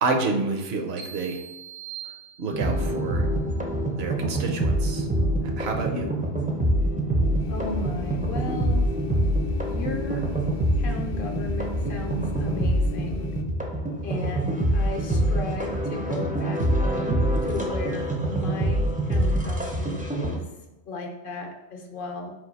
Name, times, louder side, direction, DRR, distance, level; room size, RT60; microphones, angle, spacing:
voice 1, 0.0-1.4 2.4-3.3 4.0-5.1 5.6-6.1, right 3 dB, 70° right, 3 dB, 0.9 m, -28 dB
sound 1, 1.0-2.9, right 9 dB, 85° right, 1.9 m, -42 dB
sound 2, 2.5-20.4, right 1 dB, 10° right, 0.4 m, -25 dB
sound 3, 7.4-13.4, left 6 dB, 85° left, 0.9 m, -35 dB
voice 2, 7.5-8.9 9.7-10.3 10.8-13.4 14.0-17.2 17.5-20.5 20.9-22.3, left 2 dB, 55° left, 3 dB, 0.8 m, -35 dB
4.1 x 2.6 x 4.0 m, 1.1 s
omnidirectional pair, 1.2 m